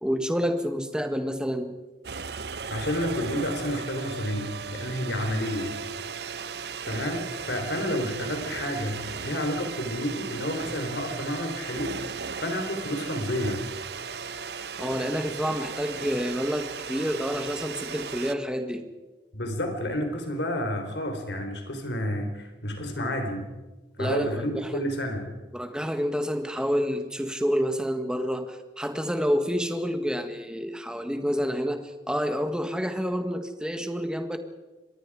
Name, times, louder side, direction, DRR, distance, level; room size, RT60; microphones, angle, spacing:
voice 1, 0.0-1.7 14.8-18.8 24.0-24.9 25.5-34.4, equal, 5° right, 7 dB, 1.6 m, -28 dB
sound 1, 2.0-18.3, right 5 dB, 65° right, 0.8 m, -36 dB
voice 2, 2.7-5.8 6.9-12.1 12.4-13.6 19.3-23.5 24.0-25.3, equal, 80° left, 5 dB, 4.0 m, -30 dB
26.0 x 21.0 x 5.0 m, 1.2 s
head